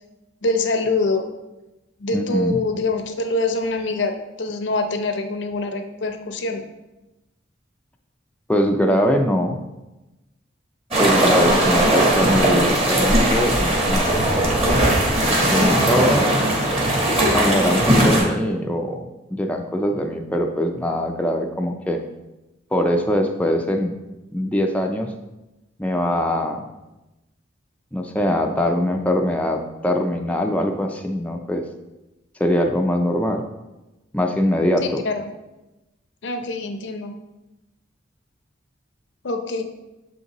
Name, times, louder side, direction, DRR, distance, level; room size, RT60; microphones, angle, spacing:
voice 1, 0.4-1.3 2.0-6.6 11.4-11.7 15.5-16.0 34.8-35.3 36.2-37.1 39.2-39.6, left 2 dB, 70° left, 6 dB, 0.6 m, -25 dB
voice 2, 2.1-2.6 8.5-9.6 11.0-14.1 15.5-16.6 17.3-22.0 22.7-23.9 24.3-25.1 25.8-26.7 27.9-31.6 32.4-33.5 34.1-35.0, equal, 5° left, 2 dB, 0.4 m, -22 dB
sound 1, 10.9-18.2, right 1 dB, 30° right, 1.3 m, -18 dB
6.6 x 5.3 x 2.9 m, 1.0 s
head